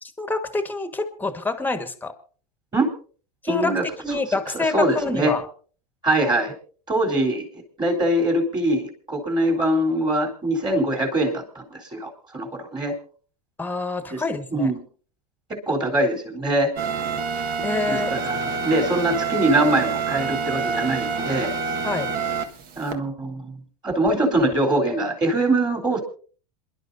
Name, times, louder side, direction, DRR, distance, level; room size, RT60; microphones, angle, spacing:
voice 1, 0.0-2.1 3.4-5.5 13.6-14.7 17.6-18.1 21.8-22.1, left 3 dB, 10° left, 9 dB, 1.6 m, -27 dB
voice 2, 3.5-3.8 4.5-5.3 6.0-6.5 6.9-7.5 7.8-12.9 14.1-14.2 14.5-14.8 15.5-16.7 17.9-21.5 22.8-23.6 23.8-26.0, right 1 dB, 20° right, 2 dB, 3.6 m, -23 dB
sound 1, 16.8-22.9, right 5 dB, 45° right, 1.6 m, -27 dB
27.0 x 11.5 x 2.7 m, 0.40 s
hypercardioid pair, 110°, 21 cm